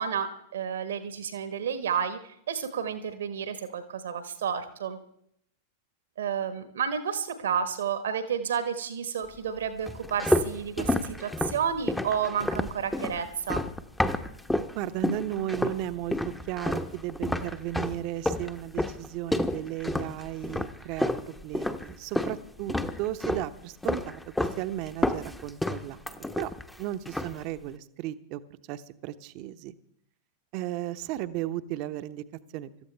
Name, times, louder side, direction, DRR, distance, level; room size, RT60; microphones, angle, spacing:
voice 1, 0.0-5.0 6.2-13.6, right 7 dB, 65° right, 10 dB, 1.3 m, -31 dB
sound 1, 9.9-14.7 15.0-15.8 16.1-22.4 22.7-23.5 23.8-24.6 24.9-26.7 27.1-27.4, left 1 dB, 5° left, 1.0 m, -29 dB
voice 2, 14.7-26.5 26.8-28.4 28.7-29.7 30.5-32.2 32.5-32.7, right 13 dB, 45° right, 12 dB, 0.9 m, -35 dB
25.5 x 13.5 x 3.4 m, 0.74 s
figure-of-eight pair, 90°, 0 cm